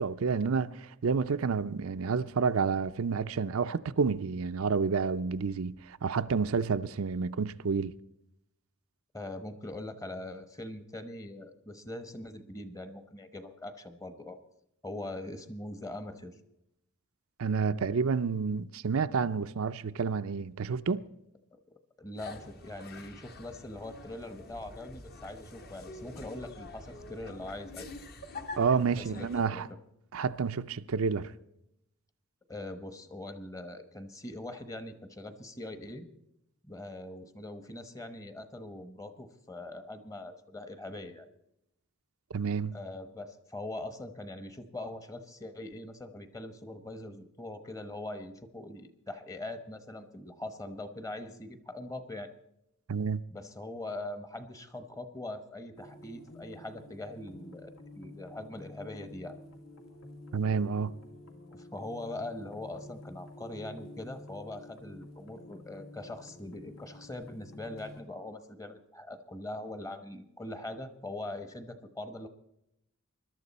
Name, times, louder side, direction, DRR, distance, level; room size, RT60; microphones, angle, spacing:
voice 1, 0.0-7.9 17.4-21.0 28.6-29.7 30.1-31.3 42.3-42.7 52.9-53.2 60.3-60.9, right 5 dB, 75° right, 0.5 m, -29 dB
voice 2, 9.1-14.4 14.8-16.4 21.5-21.6 22.0-27.9 28.9-29.6 32.5-36.0 36.7-41.3 42.7-52.3 53.3-59.4 61.5-72.3, left 2 dB, 15° left, 1.0 m, -42 dB
sound 1, 22.2-29.5, left 2 dB, 45° left, 1.3 m, -46 dB
sound 2, 55.7-68.0, left 1 dB, 80° left, 2.6 m, -50 dB
21.0 x 12.0 x 4.2 m
head